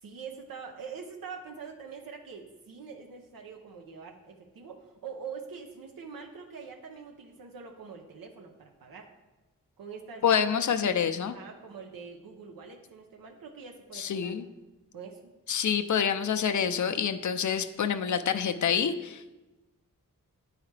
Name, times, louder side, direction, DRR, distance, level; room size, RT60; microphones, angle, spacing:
voice 1, 0.0-9.1 9.8-14.3 14.9-15.2, right 5 dB, 90° right, 2 dB, 0.7 m, -44 dB
voice 2, 10.2-11.3 13.9-14.4 15.5-19.3, left 7 dB, 60° left, 8 dB, 0.5 m, -27 dB
8.9 x 4.8 x 3.2 m, 1.1 s
cardioid pair, 55°, 34 cm